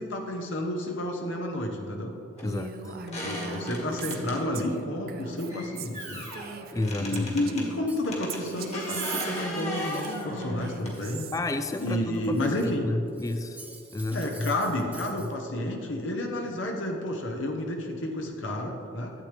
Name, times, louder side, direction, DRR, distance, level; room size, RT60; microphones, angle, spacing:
voice 1, 0.0-2.1 3.1-6.3 7.0-11.3 11.8-12.9 14.1-19.1, left 1 dB, 70° left, 1 dB, 0.9 m, -31 dB
sound 1, 2.4-2.5 3.1-4.4 5.5-7.7 8.0-11.3 12.4-12.5 14.1-14.2 14.7-14.8 15.0-15.1, left 1 dB, 35° left, 1.5 m, -37 dB
voice 2, 2.4-3.0 6.7-7.3 11.3-13.6 13.9-14.5 15.2-15.3, left 2 dB, 15° left, 8 dB, 0.3 m, -31 dB
Female speech woman speaking, 2.4-7.8 8.3-11.4, right 4 dB, 50° right, 0.6 m, -39 dB
Cutlery silverware, 7.9-10.3 10.6-12.8 13.1-15.3, right 3 dB, 10° right, 1.0 m, -50 dB
12.0 x 8.1 x 3.4 m, 3.0 s
head